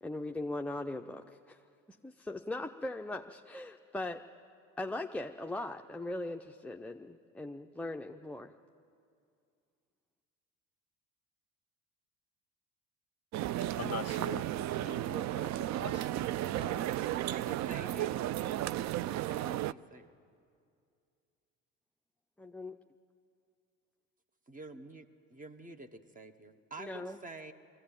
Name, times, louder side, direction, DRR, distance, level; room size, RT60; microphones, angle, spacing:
voice 1, 0.0-1.6 2.0-4.2 4.8-8.5 22.4-22.8 26.8-27.2, left 2 dB, 5° left, 4 dB, 0.6 m, -39 dB
sound 1, 13.3-19.7, right 13 dB, 50° right, 0.5 m, -34 dB
voice 2, 13.6-16.9, left 10 dB, 40° left, 13 dB, 0.7 m, -45 dB
voice 3, 17.1-18.1 19.3-20.1 24.5-27.5, right 2 dB, 20° right, 10 dB, 1.3 m, -48 dB
22.0 x 15.5 x 8.9 m, 2.4 s
hypercardioid pair, 70°, 37 cm